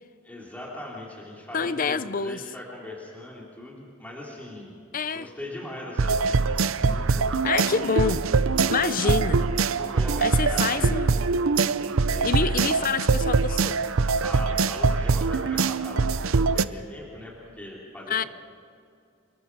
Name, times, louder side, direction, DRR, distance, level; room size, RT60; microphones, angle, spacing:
voice 1, 0.2-4.8 5.1-8.0 9.0-9.2 9.8-10.8 11.1-11.4 12.1-12.7 14.2-18.3, left 1 dB, 5° left, 3.4 m, -40 dB
voice 2, 1.5-2.4 4.9-5.3 7.4-8.2 8.7-9.4 10.2-11.1 12.2-13.8 18.1-18.2, left 5 dB, 40° left, 0.6 m, -27 dB
sound 1, 6.0-16.6, right 4 dB, 70° right, 0.6 m, -23 dB
28.5 x 21.5 x 4.8 m
head